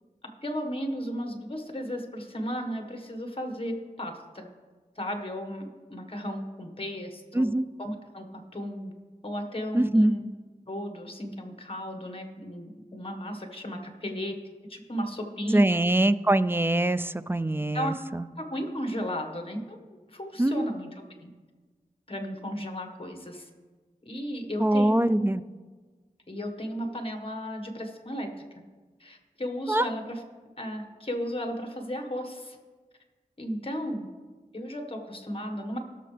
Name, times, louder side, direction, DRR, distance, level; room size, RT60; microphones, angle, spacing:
voice 1, 0.4-4.5 5.0-7.4 7.8-8.9 9.2-10.3 10.7-14.3 14.7-15.8 17.7-17.9 18.4-20.9 21.2-21.3 22.1-23.5 24.0-25.4 26.3-28.4 29.0-30.2 30.6-32.6 33.4-34.1 34.5-35.8, equal, 40° left, 4 dB, 1.5 m, -34 dB
voice 2, 7.3-7.7 9.7-10.2 15.5-18.2 20.4-20.7 24.6-25.4 29.7-29.9, right 1 dB, 15° right, 14 dB, 0.3 m, -23 dB
18.0 x 6.6 x 3.4 m, 1.4 s
wide cardioid pair, 60°, 15 cm